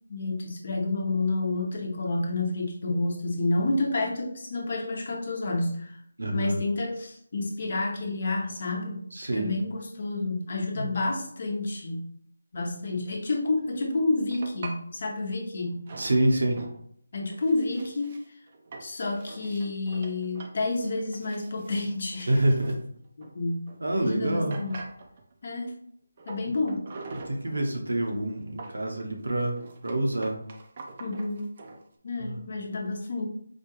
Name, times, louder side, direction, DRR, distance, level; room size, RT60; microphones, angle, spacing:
voice 1, 0.1-6.0 6.3-9.0 9.3-12.1 12.5-15.8 17.1-18.2 18.8-22.3 23.2-24.8 25.4-25.7 26.3-26.8 31.0-31.5 32.0-33.3, left 2 dB, 50° left, 0 dB, 0.9 m, -29 dB
voice 2, 6.2-6.6 9.1-9.6 10.7-10.9 16.0-16.6 22.3-22.8 23.8-24.6 26.5-26.6 27.1-30.4 32.2-32.4, right 1 dB, 80° right, 2 dB, 0.8 m, -27 dB
sound 1, 14.3-14.8 15.9-16.8 17.1-23.8 24.1-24.2 24.5-25.4 26.2-27.8 28.1-31.8, right 3 dB, 35° right, 0.5 m, -45 dB
4.3 x 2.3 x 3.0 m, 0.65 s
figure-of-eight pair, 165°, 0 cm